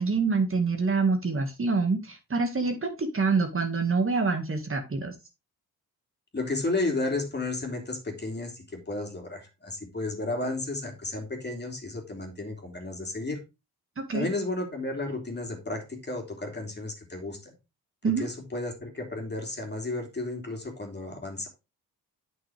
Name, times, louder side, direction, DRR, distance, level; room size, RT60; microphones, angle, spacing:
voice 1, 0.0-5.1 14.0-14.3 18.0-18.3, right 4 dB, 35° right, 5 dB, 2.1 m, -26 dB
voice 2, 6.3-13.4 14.1-17.5 18.0-21.5, left 2 dB, 30° left, 3 dB, 3.1 m, -33 dB
8.8 x 6.3 x 3.5 m, 0.26 s
cardioid pair, 75°, 36 cm